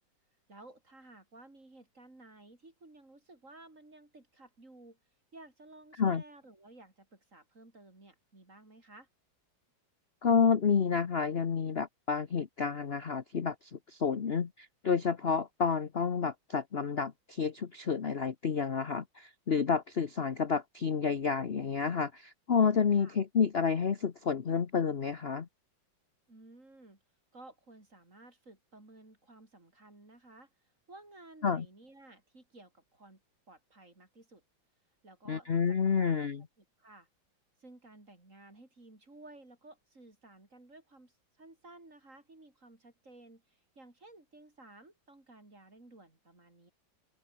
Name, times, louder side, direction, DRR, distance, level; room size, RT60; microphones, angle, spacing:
voice 1, 0.5-5.0 5.3-9.1 22.9-23.2 26.3-27.0 27.3-30.5 30.9-33.2 33.5-34.4 35.0-36.2 36.6-37.1 37.6-46.7, right 2 dB, 40° right, 5.6 m, -55 dB
voice 2, 10.2-25.5 31.4-31.7 35.3-36.5, left 6 dB, 40° left, 1.1 m, -30 dB
open air
omnidirectional pair, 2.1 m